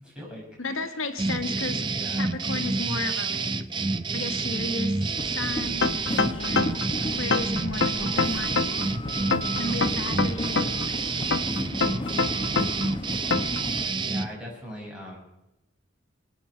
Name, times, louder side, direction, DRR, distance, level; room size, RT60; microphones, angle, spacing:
voice 1, 0.0-1.0 1.9-2.3 11.7-12.2 14.0-15.2, left 1 dB, 5° right, -3 dB, 6.4 m, -41 dB
voice 2, 0.6-1.9 2.2-3.5 4.1-5.9 6.3-6.8 7.1-8.9 9.6-11.3, left 2 dB, 80° left, 7 dB, 1.5 m, -34 dB
sound 1, 1.2-14.3, right 3 dB, 25° right, 0.6 m, -29 dB
sound 2, 5.2-13.9, left 1 dB, 25° left, 1.0 m, -35 dB
sound 3, 5.8-6.9 7.3-8.9 9.3-10.9 11.3-12.9 13.3-13.6, left 4 dB, 60° left, 0.9 m, -25 dB
24.0 x 9.2 x 5.5 m, 0.90 s
head